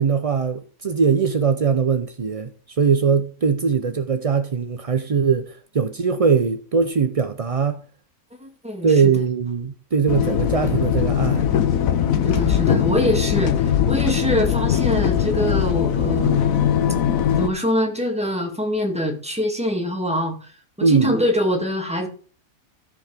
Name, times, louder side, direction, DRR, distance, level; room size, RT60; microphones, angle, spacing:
voice 1, 0.0-2.5 2.8-7.8 8.8-11.4 20.8-21.1, right 5 dB, 60° right, 0.3 m, -21 dB
voice 2, 8.4-9.1 12.2-16.4 17.4-22.1, equal, 5° right, 1.8 m, -24 dB
sound 1, 10.1-17.5, left 9 dB, 65° left, 1.1 m, -20 dB
14.0 x 5.2 x 5.1 m
omnidirectional pair, 1.6 m